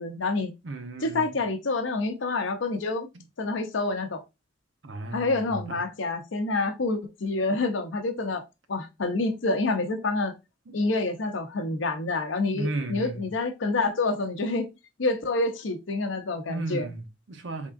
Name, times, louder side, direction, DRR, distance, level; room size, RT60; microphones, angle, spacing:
voice 1, 0.0-0.5 1.0-3.1 3.4-4.2 5.1-8.4 8.7-10.3 10.7-14.7 15.0-16.9, left 3 dB, 80° left, 0.7 m, -27 dB
voice 2, 0.6-1.4 3.1-3.3 4.8-5.9 8.1-8.3 10.7-10.8 12.5-13.3 16.5-17.7, right 2 dB, 70° right, 0.7 m, -35 dB
3.6 x 3.5 x 2.5 m
head